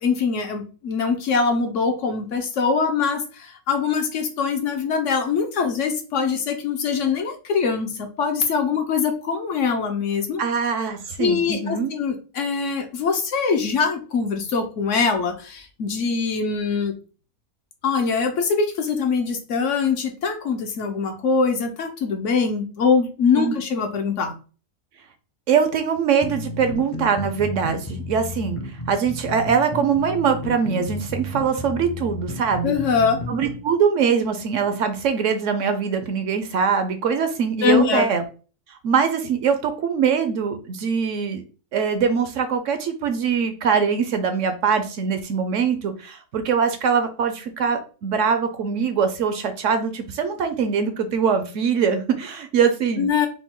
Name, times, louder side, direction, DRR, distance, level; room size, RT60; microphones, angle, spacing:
voice 1, 0.0-10.4 11.2-16.9 17.8-24.3 32.6-33.2 37.6-38.1 53.0-53.3, left 5 dB, 65° left, 5 dB, 0.9 m, -23 dB
voice 2, 10.4-11.9 23.4-23.5 25.5-28.6 28.9-32.8 33.3-38.2 38.8-41.4 41.7-53.1, right 6 dB, 65° right, 8 dB, 0.8 m, -22 dB
sound 1, 26.2-33.6, left 1 dB, 45° left, 0.4 m, -32 dB
4.9 x 2.2 x 3.7 m, 0.36 s
omnidirectional pair, 1.5 m